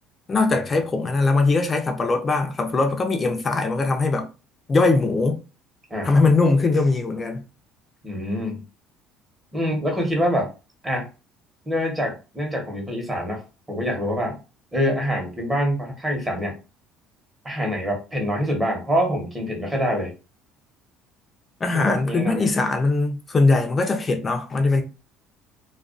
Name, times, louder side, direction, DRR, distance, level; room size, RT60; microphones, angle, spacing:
voice 1, 0.3-4.3 4.7-5.4 6.0-7.4 21.6-24.8, left 3 dB, 25° left, 0.5 m, -21 dB
voice 2, 8.0-8.6 9.5-10.5 10.8-11.1 11.7-13.4 13.7-14.4 14.7-16.5 17.4-20.1 21.7-22.5, equal, 15° right, 0.9 m, -25 dB
2.3 x 2.2 x 2.4 m
cardioid pair, 135°, 0 cm